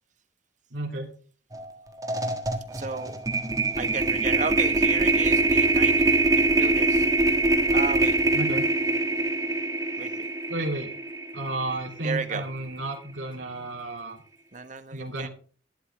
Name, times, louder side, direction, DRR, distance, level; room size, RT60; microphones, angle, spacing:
voice 1, 0.7-1.1 8.3-8.7 10.5-10.9 11.3-14.2 14.9-15.3, right 2 dB, 90° right, 0 dB, 2.7 m, -32 dB
sound 1, 1.5-1.7 2.0-12.2, right 2 dB, 20° right, 1.4 m, -24 dB
voice 2, 2.7-3.2 3.8-7.1 7.7-8.2 10.0-10.3 12.0-12.4 14.5-15.3, right 4 dB, 40° right, 10 dB, 1.2 m, -33 dB
11.5 x 11.0 x 3.3 m, 0.40 s
head